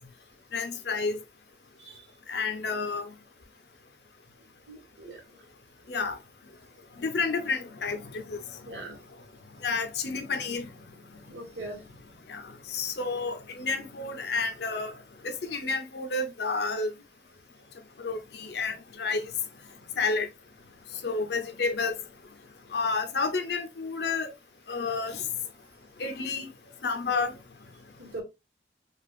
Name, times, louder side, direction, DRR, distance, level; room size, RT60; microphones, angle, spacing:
voice 1, 0.5-1.2 2.3-3.1 5.9-6.2 7.0-8.4 9.6-10.7 12.3-14.9 15.2-16.9 18.0-19.3 20.0-20.3 21.0-22.0 22.7-24.3 24.7-25.3 26.0-26.5 26.8-27.3, left 4 dB, 65° left, 0.6 m, -30 dB
voice 2, 4.7-5.2 8.7-8.9 11.3-11.8 28.0-28.2, right 2 dB, 80° right, 1.5 m, -40 dB
4.9 x 2.4 x 2.3 m
head